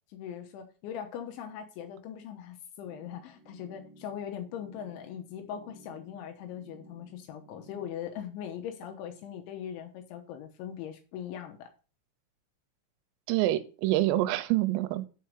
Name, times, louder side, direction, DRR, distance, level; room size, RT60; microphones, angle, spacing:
voice 1, 0.1-11.7, left 9 dB, 80° left, 3.1 m, -40 dB
sound 1, 2.8-7.9, right 2 dB, 55° right, 1.7 m, -56 dB
voice 2, 13.3-15.1, right 16 dB, 85° right, 3.4 m, -26 dB
7.2 x 4.7 x 6.4 m
omnidirectional pair, 5.8 m